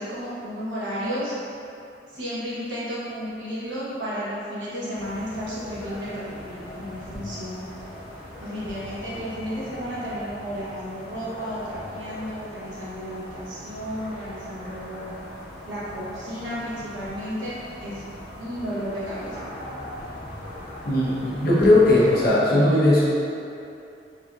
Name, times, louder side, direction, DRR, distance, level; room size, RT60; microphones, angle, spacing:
voice 1, 0.0-1.4 2.1-7.7 8.4-15.2 15.7-18.0 18.4-19.4, equal, 90° right, -9 dB, 1.0 m, -33 dB
sound 1, 4.9-22.3, equal, 75° left, 1.2 m, -40 dB
voice 2, 20.8-23.0, left 1 dB, 55° left, -7 dB, 0.8 m, -18 dB
4.0 x 2.7 x 2.4 m, 2.7 s
head